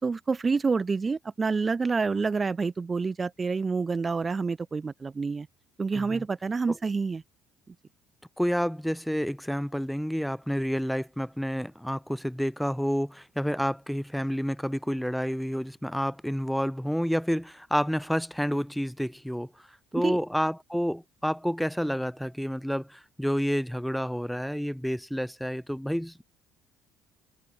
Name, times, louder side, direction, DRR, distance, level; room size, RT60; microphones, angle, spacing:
voice 1, 0.0-5.5 5.8-7.2 19.9-20.2, right 4 dB, 25° right, 1.7 m, -28 dB
voice 2, 5.9-6.2 6.7-6.8 8.4-19.5 19.9-26.2, equal, ahead, 0.9 m, -29 dB
supercardioid pair, 90°, 0 cm